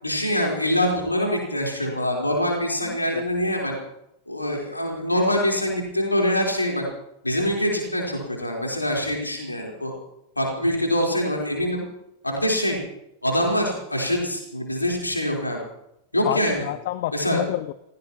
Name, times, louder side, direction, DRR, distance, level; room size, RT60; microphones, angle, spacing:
voice 1, 0.0-3.7 4.3-6.8 7.2-9.9 10.4-11.8 12.2-12.8 13.2-15.6 16.1-16.7 17.1-17.4, equal, 85° left, 0 dB, 4.0 m, -24 dB
voice 2, 2.9-3.2 16.2-17.7, left 14 dB, 50° left, 15 dB, 0.6 m, -29 dB
28.0 x 16.5 x 3.0 m, 0.83 s
figure-of-eight pair, 90°, 0 cm